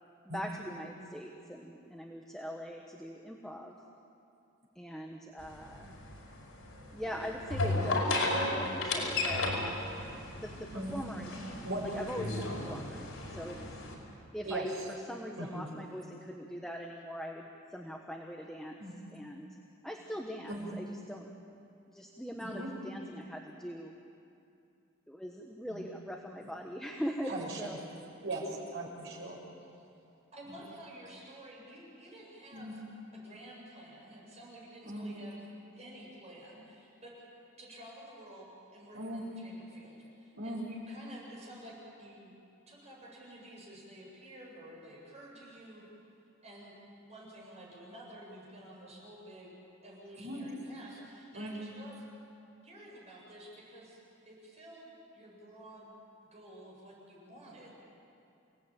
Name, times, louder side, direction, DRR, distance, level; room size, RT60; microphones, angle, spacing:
voice 1, 0.2-3.8 4.7-5.9 6.9-10.0 10.3-11.6 11.9-13.6 14.3-14.7 15.1-18.8 19.1-19.5 19.8-21.3 21.9-23.9 25.1-27.8, equal, 5° left, 1 dB, 1.3 m, -42 dB
sound 1, 5.4-13.9, left 2 dB, 90° left, 5.4 m, -34 dB
voice 2, 11.6-12.1 14.4-14.9 15.4-15.7 18.8-18.9 20.5-20.7 22.4-22.7 25.7-25.9 27.3-27.7 28.2-29.4 32.5-32.7 34.8-35.1 38.9-39.3 40.3-40.6 50.2-50.4 51.3-51.5, right 1 dB, 60° right, -1 dB, 5.9 m, -38 dB
voice 3, 30.3-32.8 33.1-35.4 35.7-37.1 37.6-42.4 42.7-45.8 46.4-46.7 47.0-49.5 49.8-52.1 52.6-54.0 54.2-55.9 56.3-57.7, right 1 dB, 30° right, -4 dB, 8.0 m, -51 dB
29.0 x 18.0 x 9.0 m, 2.6 s
head